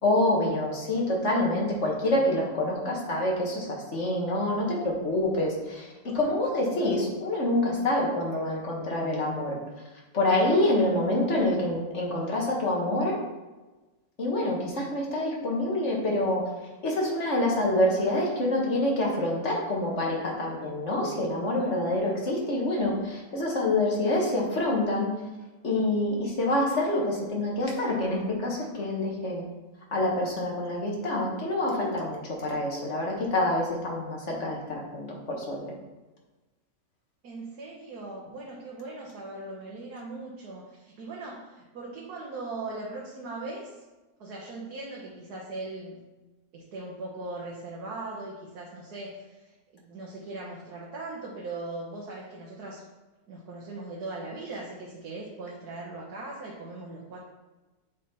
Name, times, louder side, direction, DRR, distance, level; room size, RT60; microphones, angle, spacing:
voice 1, 0.0-9.6 10.1-13.2 14.2-16.5 16.8-25.1 25.6-29.4 29.9-35.7, left 1 dB, 50° left, -2 dB, 1.7 m, -27 dB
voice 2, 37.2-43.8 44.2-46.0 46.5-49.5 49.8-52.8 53.3-57.2, right 2 dB, 85° right, -3 dB, 1.6 m, -39 dB
8.3 x 4.1 x 4.2 m, 1.2 s
omnidirectional pair, 1.6 m